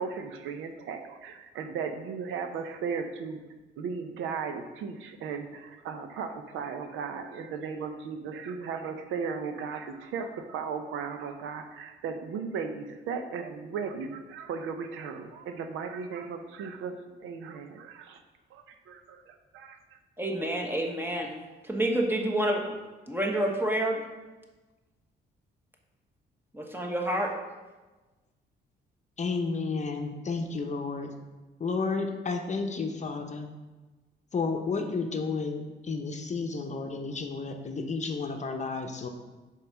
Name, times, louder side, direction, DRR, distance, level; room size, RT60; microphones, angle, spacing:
voice 1, 0.0-3.4 3.8-17.0 17.2-18.2 18.5-20.0, right 5 dB, 85° right, 7 dB, 0.6 m, -36 dB
voice 2, 20.2-21.3 21.6-22.6 23.1-24.0 26.5-27.3, right 1 dB, 10° right, 1 dB, 1.2 m, -28 dB
voice 3, 29.2-31.1 31.6-33.5 34.3-39.1, left 4 dB, 35° left, 4 dB, 0.8 m, -32 dB
5.3 x 4.6 x 5.9 m, 1.2 s
cardioid pair, 90°, 20 cm